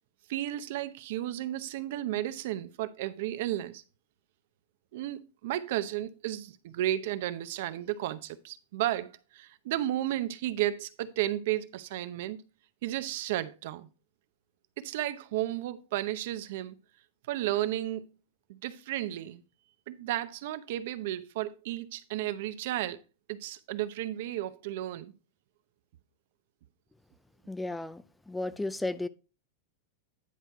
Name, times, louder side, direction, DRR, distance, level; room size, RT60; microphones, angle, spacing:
voice 1, 0.3-3.8 4.9-12.4 12.8-13.9 14.8-16.8 17.3-18.1 18.5-19.4 19.9-23.0 23.3-25.1, right 13 dB, 60° right, 0.7 m, -33 dB
voice 2, 27.5-29.1, left 2 dB, 5° left, 0.4 m, -34 dB
10.0 x 4.5 x 4.6 m
supercardioid pair, 150°, 0 cm